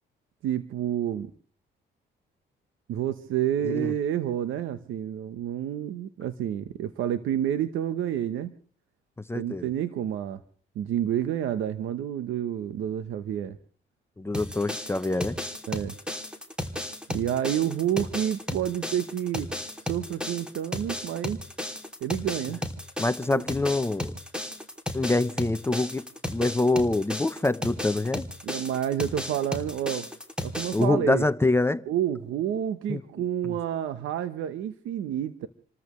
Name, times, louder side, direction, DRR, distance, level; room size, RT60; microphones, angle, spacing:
voice 1, 0.4-1.3 2.9-8.5 9.3-10.4 10.7-13.6 15.7-15.9 17.1-19.5 19.8-21.4 22.0-22.6 23.3-23.4 28.4-30.0 30.4-31.2 31.9-35.5, right 10 dB, 85° right, 1.0 m, -29 dB
voice 2, 9.3-9.7 14.2-15.4 23.0-24.1 24.9-28.3 30.7-31.8 32.9-33.0 33.4-33.5, left 2 dB, 10° left, 0.8 m, -25 dB
sound 1, 14.3-30.8, left 1 dB, 5° right, 2.8 m, -34 dB
29.0 x 14.0 x 3.2 m
cardioid pair, 90°, 20 cm